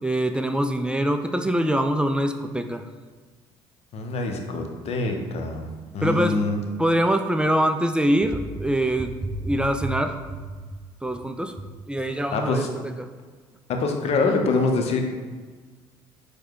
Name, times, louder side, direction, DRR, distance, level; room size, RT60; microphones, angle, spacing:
voice 1, 0.0-2.8 6.0-6.4 6.8-10.2 11.0-11.5 11.9-12.7 13.0-13.1, right 1 dB, 5° right, 6 dB, 0.3 m, -23 dB
voice 2, 3.9-6.6 12.3-12.7 13.7-15.0, left 3 dB, 50° left, 4 dB, 0.7 m, -25 dB
4.6 x 2.3 x 4.5 m, 1.5 s
hypercardioid pair, 55°, 13 cm